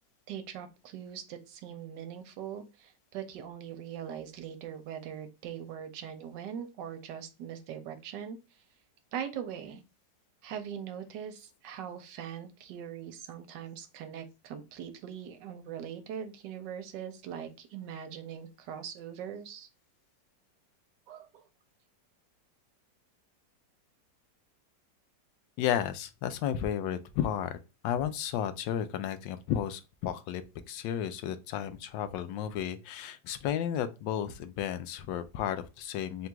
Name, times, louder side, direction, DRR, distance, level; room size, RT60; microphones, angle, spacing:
voice 1, 0.3-8.6 9.1-9.8 10.4-19.7 21.1-21.5, right 8 dB, 80° right, 1.3 m, -41 dB
voice 2, 25.6-27.6 27.8-36.3, left 9 dB, 85° left, 1.3 m, -33 dB
3.8 x 2.3 x 4.4 m
omnidirectional pair, 1.9 m